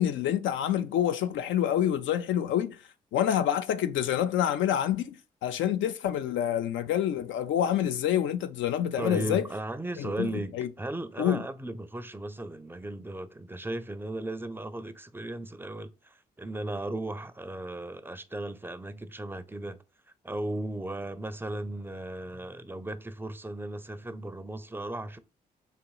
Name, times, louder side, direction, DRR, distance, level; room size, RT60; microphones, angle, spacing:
voice 1, 0.0-2.8 3.1-9.5 10.0-10.7 11.2-11.4, left 10 dB, 65° left, 0.5 m, -27 dB
voice 2, 9.0-19.8 20.2-25.2, right 1 dB, 10° right, 0.5 m, -36 dB
4.2 x 2.9 x 2.3 m
hypercardioid pair, 45°, 21 cm